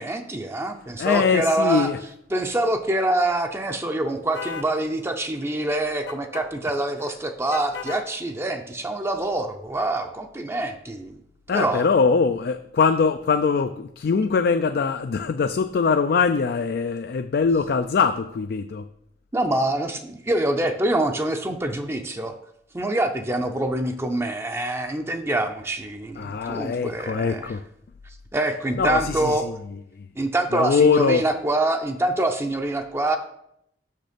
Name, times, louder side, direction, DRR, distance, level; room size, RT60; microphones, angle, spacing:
voice 1, 0.0-1.9 2.3-11.2 11.5-11.9 19.3-22.3 22.7-27.5 28.3-29.5 30.2-33.2, right 1 dB, 15° right, 0.5 m, -25 dB
voice 2, 1.0-2.0 11.5-18.9 26.2-27.6 28.8-29.6 30.0-30.1 30.5-31.2, left 5 dB, 60° left, 0.3 m, -22 dB
sound 1, 4.3-4.7 6.1-6.5 7.5-8.1, left 6 dB, 90° left, 0.8 m, -35 dB
6.5 x 6.4 x 5.1 m
head